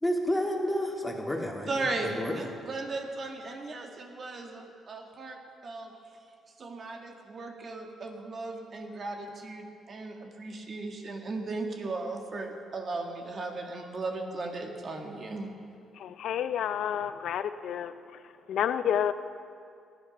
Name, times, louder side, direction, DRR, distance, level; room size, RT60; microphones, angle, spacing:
voice 1, 0.0-2.3, equal, 10° left, 2.2 m, -30 dB
voice 2, 1.7-5.9 6.6-15.5, right 3 dB, 45° right, 1.8 m, -36 dB
voice 3, 15.9-17.9 18.5-19.1, left 9 dB, 75° left, 0.6 m, -29 dB
16.5 x 9.8 x 5.3 m
cardioid pair, 90°, 0 cm